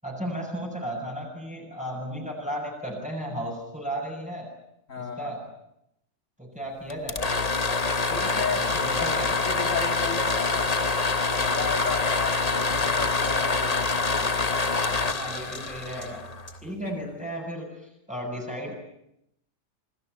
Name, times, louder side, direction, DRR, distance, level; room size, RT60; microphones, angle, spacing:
voice 1, 0.0-4.5 5.0-5.4 6.4-7.2 8.5-9.3 15.1-16.2 16.6-18.8, equal, 5° right, -1 dB, 7.3 m, -34 dB
voice 2, 4.9-5.4 8.0-10.8 11.4-14.5, left 5 dB, 85° left, 5 dB, 3.1 m, -35 dB
sound 1, 6.9-16.7, left 3 dB, 30° left, 1.3 m, -26 dB
sound 2, 11.4-11.5 11.9-12.0 12.3-12.4 12.8-12.9 13.2-13.3 13.7-13.8 14.2-14.3 14.6-14.7 15.1-15.2 15.5-15.6 16.0-16.1 16.5-16.6, left 3 dB, 55° left, 3.6 m, -44 dB
28.0 x 20.0 x 9.5 m, 0.82 s
omnidirectional pair, 1.3 m